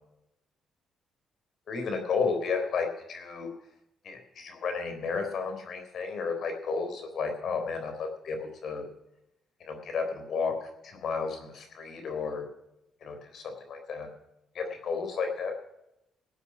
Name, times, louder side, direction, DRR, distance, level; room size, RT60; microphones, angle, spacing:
voice 1, 1.7-3.5 4.0-8.8 9.6-12.4 13.0-14.1 14.5-15.5, left 5 dB, 60° left, 5 dB, 3.7 m, -32 dB
20.0 x 8.2 x 6.1 m, 0.86 s
cardioid pair, 90°, 0 cm